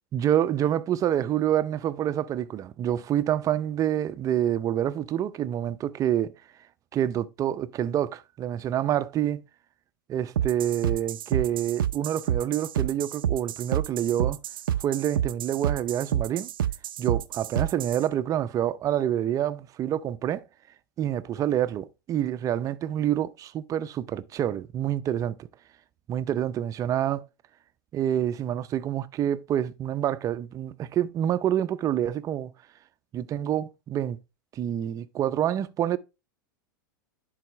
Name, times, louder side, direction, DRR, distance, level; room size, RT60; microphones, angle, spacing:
voice 1, 0.1-6.3 6.9-9.4 10.1-14.4 14.8-16.5 17.0-20.4 21.0-25.5 26.1-27.2 27.9-32.5 33.1-34.2 34.5-36.0, right 11 dB, 30° right, 0.5 m, -27 dB
sound 1, 10.3-18.0, right 10 dB, 85° right, 0.5 m, -28 dB
10.5 x 4.1 x 3.0 m
hypercardioid pair, 110°, 11 cm